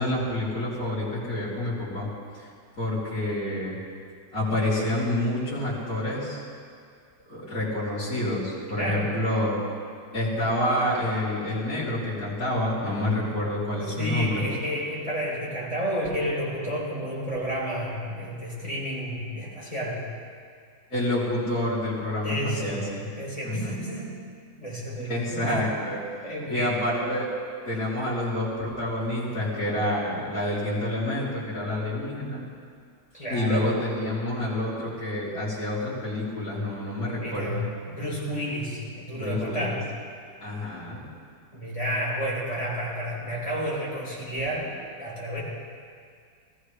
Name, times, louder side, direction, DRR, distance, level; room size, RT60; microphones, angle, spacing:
voice 1, 0.0-2.1 2.3-2.5 2.8-3.8 4.3-6.4 7.3-9.6 10.1-14.4 20.9-23.1 23.4-23.8 25.0-26.0 26.5-27.3 27.7-32.4 33.3-37.6 39.2-39.8 40.4-41.1, left 1 dB, 55° left, -12 dB, 3.8 m, -28 dB
voice 2, 8.7-9.1 13.8-20.0 22.2-22.8 23.2-24.1 24.6-25.6 26.2-26.8 33.1-33.7 37.1-37.6 37.9-39.9 41.5-44.7 45.0-45.4, equal, 20° left, -5 dB, 3.6 m, -31 dB
19.0 x 15.0 x 3.3 m, 2.2 s
omnidirectional pair, 1.8 m